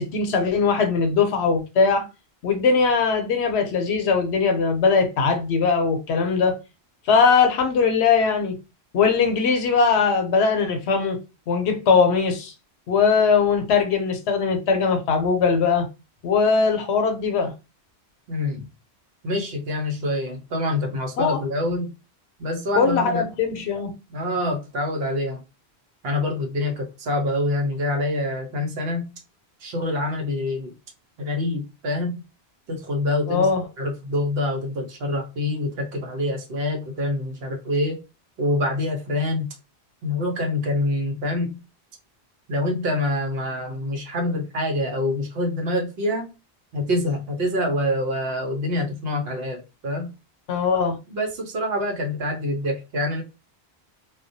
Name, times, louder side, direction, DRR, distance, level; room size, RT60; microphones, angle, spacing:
voice 1, 0.0-2.1 2.4-6.6 7.1-8.6 8.9-11.2 11.5-12.5 12.9-15.9 16.2-17.5 21.2-21.4 22.8-23.9 33.3-33.6 50.5-51.0, left 5 dB, 85° left, 0.9 m, -20 dB
voice 2, 18.3-18.7 19.2-21.9 22.4-23.2 24.1-25.4 26.0-29.1 29.6-30.7 31.2-32.2 32.7-33.5 33.8-38.0 38.4-39.5 40.0-41.6 42.5-46.3 46.7-50.1 51.1-53.2, left 1 dB, 70° right, 0.9 m, -26 dB
2.3 x 2.1 x 2.6 m
omnidirectional pair, 1.1 m